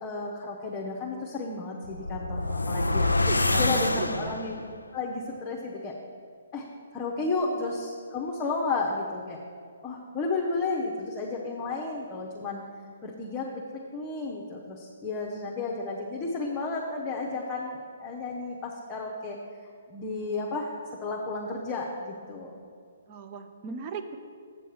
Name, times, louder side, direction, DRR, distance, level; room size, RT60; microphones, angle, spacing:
voice 1, 0.0-4.6 4.9-6.0 6.5-6.7 6.9-9.4 9.8-12.6 13.0-19.4 19.9-20.7 21.0-22.6, left 3 dB, 20° left, -1 dB, 0.8 m, -32 dB
sound 1, 1.8-4.7, left 2 dB, 85° left, 0.4 m, -26 dB
voice 2, 3.3-4.4 7.4-7.6 23.1-24.2, right 6 dB, 35° right, 7 dB, 0.6 m, -37 dB
8.1 x 6.9 x 4.7 m, 2.2 s
figure-of-eight pair, 130°, 0 cm